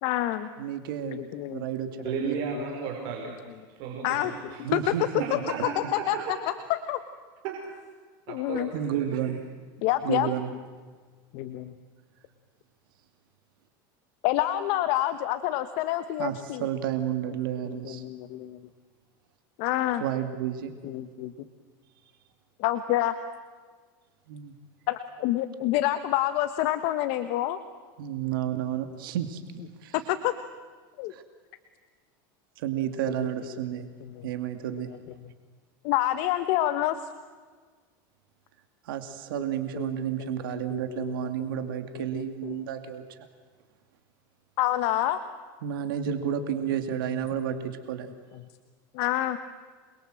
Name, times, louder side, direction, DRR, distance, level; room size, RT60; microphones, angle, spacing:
voice 1, 0.0-0.5 1.0-1.6 2.0-2.2 2.5-2.8 4.0-4.3 4.7-4.8 6.1-6.4 6.7-7.0 8.3-8.7 9.8-10.3 11.3-11.7 14.2-16.7 17.7-18.6 19.6-20.0 20.8-21.3 22.6-23.1 24.9-27.6 29.9-30.3 31.0-31.1 33.1-33.3 34.0-34.2 34.7-34.8 35.8-37.0 39.3-39.4 39.7-42.6 44.6-45.2 46.1-46.4 47.1-47.2 47.5-47.6 48.9-49.4, left 14 dB, 60° left, 10 dB, 1.4 m, -28 dB
voice 2, 0.6-2.3 4.6-5.2 6.2-6.3 8.7-9.4 10.0-10.5 16.2-18.0 20.0-20.7 24.3-24.5 28.0-30.0 31.1-31.2 32.6-33.9 34.2-35.2 38.8-43.2 45.6-48.1, right 10 dB, 85° right, 8 dB, 2.5 m, -31 dB
voice 3, 2.0-3.3 3.8-4.6 5.2-6.4 7.4-7.6 8.3-9.3, right 6 dB, 60° right, 1 dB, 5.3 m, -34 dB
28.0 x 22.5 x 7.8 m, 1.5 s
supercardioid pair, 140°, 11 cm